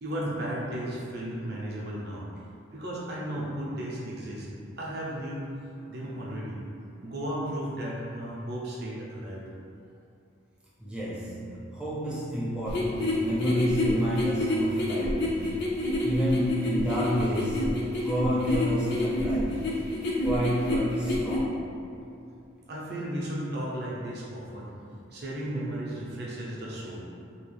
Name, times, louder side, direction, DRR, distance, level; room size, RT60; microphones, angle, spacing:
voice 1, 0.0-2.2 2.7-4.5 4.8-5.5 5.9-6.6 7.0-9.4 22.7-24.7 25.1-27.0, right 1 dB, 50° right, -5 dB, 0.6 m, -34 dB
voice 2, 10.8-15.4 16.0-17.7 18.0-19.7 20.2-21.7 26.9-27.0, equal, 5° right, -8 dB, 0.5 m, -30 dB
sound 1, 12.7-21.4, left 1 dB, 55° left, 0.5 m, -28 dB
2.9 x 2.3 x 3.2 m, 2.6 s
head